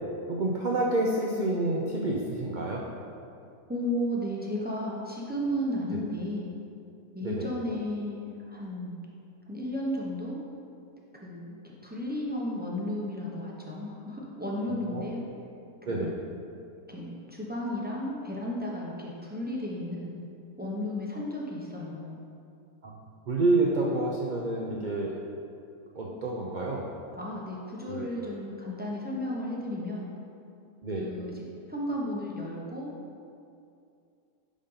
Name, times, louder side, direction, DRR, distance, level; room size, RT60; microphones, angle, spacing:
voice 1, 0.3-2.8 7.2-7.5 14.8-15.0 15.8-16.1 22.8-22.9 23.3-25.1 26.0-26.9 27.9-28.1 30.8-31.1, right 2 dB, 75° right, -3 dB, 0.4 m, -28 dB
voice 2, 3.7-6.5 7.1-9.0 9.5-10.4 11.2-15.2 15.9-16.2 16.9-20.2 20.6-22.2 27.2-30.1 31.0-31.3 31.7-32.9, left 1 dB, 10° right, -4 dB, 0.4 m, -34 dB
5.2 x 5.1 x 5.5 m, 2.5 s
omnidirectional pair, 1.7 m